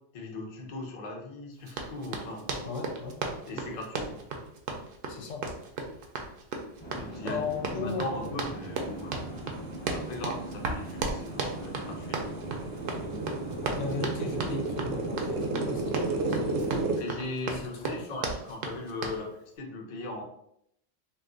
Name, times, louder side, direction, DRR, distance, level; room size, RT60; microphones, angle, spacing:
voice 1, 0.1-2.7 3.5-4.2 7.0-9.4 9.9-12.4 16.0-16.2 16.9-20.2, left 2 dB, 45° left, 1 dB, 0.6 m, -39 dB
Run, 1.7-19.2, right 4 dB, 60° right, 0.6 m, -35 dB
voice 2, 2.7-3.2 3.5-3.6 5.1-5.4 7.2-8.4 13.7-16.6 17.5-18.2, left 4 dB, 75° left, 2 dB, 0.9 m, -37 dB
sound 1, 6.8-16.8, right 1 dB, 25° left, 0.9 m, -41 dB
sound 2, 10.5-10.6 11.0-17.0, right 3 dB, 85° right, 1.0 m, -32 dB
2.5 x 2.3 x 3.7 m, 0.74 s
omnidirectional pair, 1.3 m